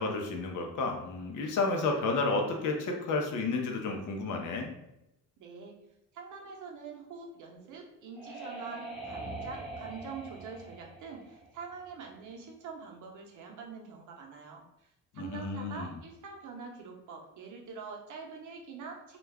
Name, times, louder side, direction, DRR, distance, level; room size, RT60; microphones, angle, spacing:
voice 1, 0.0-4.7 15.1-15.9, left 3 dB, 60° left, 3 dB, 0.7 m, -31 dB
voice 2, 5.4-5.8 6.1-19.2, right 5 dB, 60° right, 1 dB, 0.7 m, -45 dB
sound 1, 7.6-12.2, right 2 dB, ahead, 0.9 m, -43 dB
2.3 x 2.3 x 3.3 m, 0.86 s
cardioid pair, 95°, 35 cm